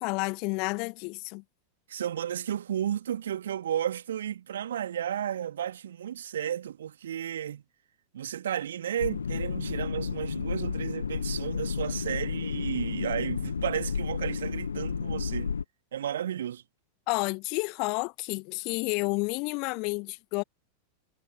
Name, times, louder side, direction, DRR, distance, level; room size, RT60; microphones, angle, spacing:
voice 1, 0.0-1.4 17.1-20.4, left 30 dB, 45° left, 2.1 m, -30 dB
voice 2, 1.9-7.6 8.1-15.5 15.9-16.6, right 10 dB, 65° right, 2.8 m, -33 dB
sound 1, 9.0-15.6, left 6 dB, 70° left, 1.1 m, -32 dB
figure-of-eight pair, 90°, 0 cm